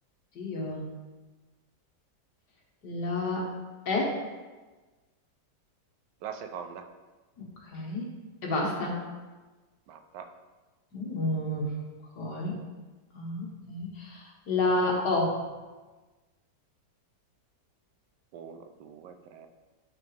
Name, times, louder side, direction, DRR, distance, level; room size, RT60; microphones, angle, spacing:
voice 1, 0.4-0.8 2.8-3.5 3.9-4.2 7.4-8.1 8.4-9.0 10.9-11.7 12.2-12.6 13.1-15.3, left 2 dB, 70° left, -2 dB, 2.0 m, -30 dB
voice 2, 6.2-6.9 9.9-10.3 18.3-19.5, right 7 dB, 85° right, 7 dB, 1.3 m, -42 dB
10.0 x 5.3 x 3.4 m, 1.3 s
omnidirectional pair, 1.8 m